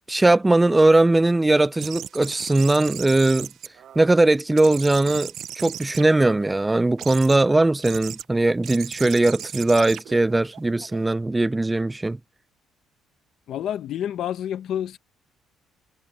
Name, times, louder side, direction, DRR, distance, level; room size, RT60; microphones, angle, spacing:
voice 1, 0.1-3.5 4.0-12.2, right 2 dB, 10° right, 0.3 m, -19 dB
sound 1, 1.8-4.2 4.6-6.5 7.0-7.4 7.8-8.2 8.6-11.1, right 10 dB, 50° right, 0.6 m, -37 dB
voice 2, 13.5-15.0, left 10 dB, 55° left, 1.0 m, -28 dB
cardioid pair, 160°, 0 cm